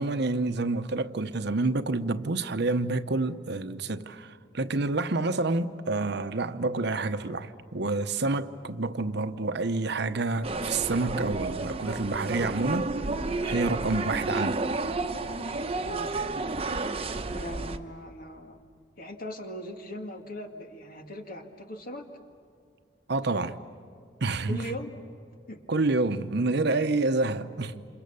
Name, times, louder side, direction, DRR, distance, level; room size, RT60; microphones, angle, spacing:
voice 1, 0.0-12.9 13.4-14.6 23.1-23.6 24.2-24.6 25.7-27.9, right 3 dB, 65° right, 0.9 m, -28 dB
sound 1, 10.4-17.8, right 3 dB, 35° right, 1.0 m, -31 dB
voice 2, 15.8-16.2 16.9-18.6 19.0-22.0 24.5-24.9 25.5-25.6, left 1 dB, 55° left, 2.1 m, -40 dB
28.5 x 27.5 x 6.9 m
head